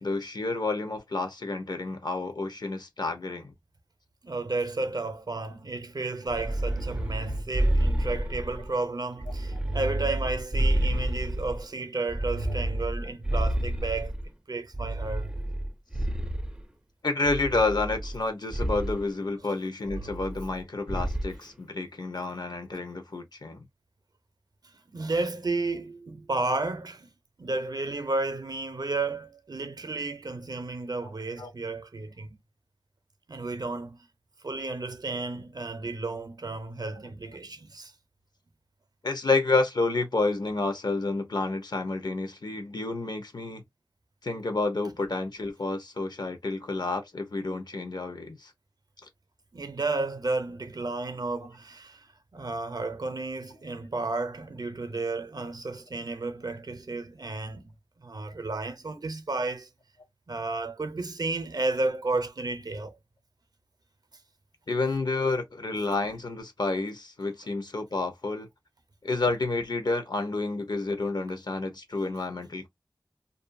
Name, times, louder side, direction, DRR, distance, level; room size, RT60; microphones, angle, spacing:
voice 1, 0.0-3.5 17.0-23.6 31.4-31.5 39.0-43.6 44.2-48.5 64.7-68.5 69.0-72.7, left 3 dB, 70° left, 0.8 m, -29 dB
voice 2, 4.2-14.1 14.5-15.3 24.9-27.1 27.4-32.4 33.3-34.1 34.4-37.9 49.5-57.7 58.0-59.7 60.3-63.0, right 3 dB, 60° right, 0.6 m, -32 dB
sound 1, 6.3-8.7 9.2-11.6 12.1-14.3 14.7-16.6 17.3-18.2 18.5-19.0 19.9-20.6 20.9-21.3, right 1 dB, 15° right, 0.4 m, -29 dB
2.6 x 2.2 x 2.5 m
wide cardioid pair, 60°, 7 cm